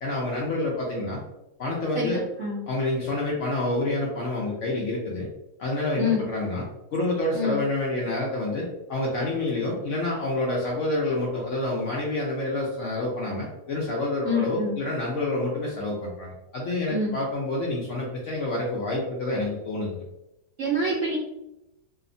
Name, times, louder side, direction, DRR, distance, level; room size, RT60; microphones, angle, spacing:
voice 1, 0.0-1.2 1.6-2.2 2.7-5.3 5.6-6.6 6.9-20.0, left 2 dB, 70° left, -3 dB, 0.7 m, -28 dB
voice 2, 1.9-2.6 6.0-6.2 7.3-7.6 14.2-14.8 16.9-17.1 20.6-21.2, left 2 dB, 65° right, -5 dB, 0.8 m, -26 dB
2.8 x 2.1 x 2.5 m, 0.90 s
omnidirectional pair, 1.8 m